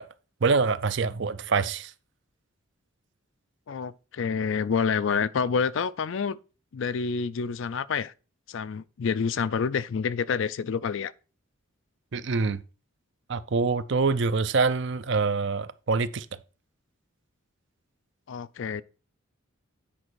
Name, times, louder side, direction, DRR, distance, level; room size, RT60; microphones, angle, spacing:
voice 1, 0.4-1.9 12.1-12.6 13.3-16.3, right 4 dB, 55° right, 0.5 m, -25 dB
voice 2, 3.7-6.4 6.7-8.1 8.5-11.1 18.3-18.8, left 6 dB, 60° left, 0.4 m, -28 dB
8.8 x 5.2 x 4.6 m
head